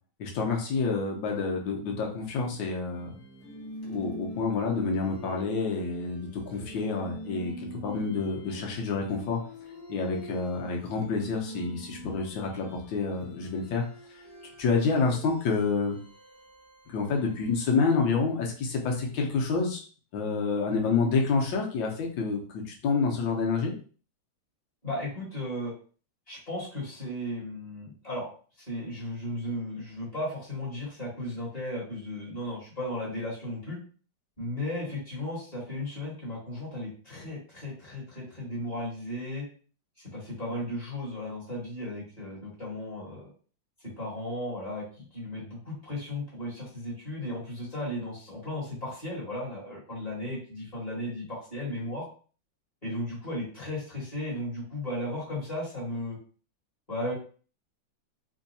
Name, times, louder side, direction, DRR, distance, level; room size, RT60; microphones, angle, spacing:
voice 1, 0.2-3.1 3.8-9.4 9.9-13.8 14.6-16.0 16.9-19.8 20.1-23.7, left 4 dB, 75° left, 0 dB, 1.5 m, -28 dB
sound 1, 2.8-17.9, right 1 dB, 45° left, 1.0 m, -45 dB
voice 2, 24.8-25.7 26.3-28.3 28.7-33.8 34.4-39.4 40.1-43.3 43.8-52.1 52.8-56.2 56.9-57.1, left 1 dB, 20° left, -7 dB, 1.8 m, -35 dB
4.3 x 2.7 x 2.7 m, 0.40 s
omnidirectional pair, 2.2 m